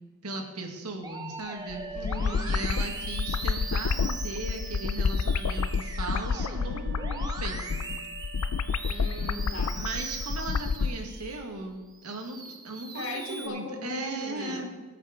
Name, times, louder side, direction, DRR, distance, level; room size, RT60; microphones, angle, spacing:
voice 1, 0.2-1.8 2.5-7.8 9.7-14.7, right 2 dB, 85° right, 3 dB, 1.8 m, -37 dB
Musical instrument, 1.0-11.5 11.9-13.5, right 3 dB, 15° right, 0.9 m, -41 dB
sound 1, 1.7-10.9, left 5 dB, 80° left, 0.5 m, -29 dB
voice 2, 1.9-2.6 8.8-9.7 12.9-14.7, left 2 dB, 60° left, 1 dB, 2.0 m, -38 dB
sound 2, 2.4-10.8, equal, 45° right, 1.7 m, -50 dB
18.5 x 7.9 x 3.8 m, 1.3 s
head